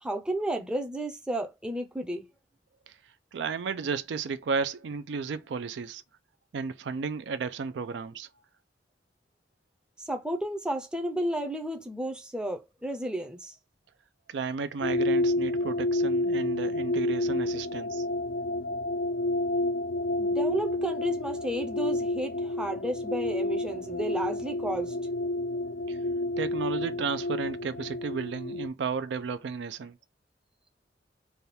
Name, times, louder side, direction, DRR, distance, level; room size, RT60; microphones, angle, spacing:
voice 1, 0.0-2.3 10.0-13.5 20.2-25.0, right 1 dB, 5° right, 0.5 m, -32 dB
voice 2, 3.3-6.0 6.5-8.3 14.3-18.0 25.9-26.0 26.4-30.0, right 5 dB, 70° right, 0.4 m, -33 dB
sound 1, 14.8-28.7, left 2 dB, 65° left, 0.4 m, -29 dB
3.4 x 2.3 x 4.1 m
head